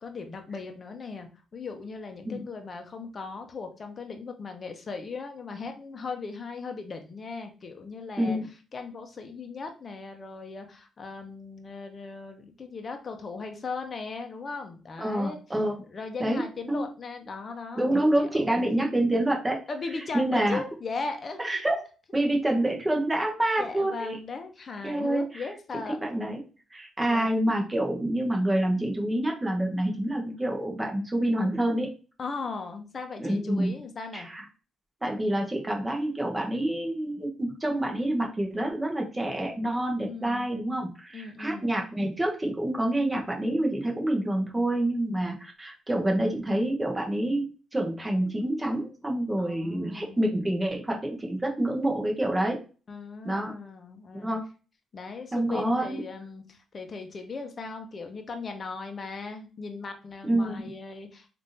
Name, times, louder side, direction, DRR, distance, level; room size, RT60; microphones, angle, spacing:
voice 1, 0.0-8.4 8.7-15.4 15.9-18.6 19.7-21.6 23.6-26.0 27.1-27.3 32.2-34.3 40.0-40.5 41.1-41.7 49.4-50.2 52.9-54.4 54.9-61.3, left 4 dB, 40° left, 5 dB, 0.6 m, -38 dB
voice 2, 8.2-8.5 15.0-15.8 16.2-16.8 17.7-19.6 20.1-20.6 21.4-21.8 22.1-24.2 24.8-25.5 26.0-26.4 26.7-31.9 33.2-33.8 34.1-34.4 35.0-47.4 47.7-52.6 53.2-53.5 54.2-54.4 55.3-56.0 60.2-60.6, right 1 dB, 15° right, 0 dB, 0.8 m, -27 dB
3.3 x 2.5 x 2.7 m, 0.35 s
cardioid pair, 90°, 0 cm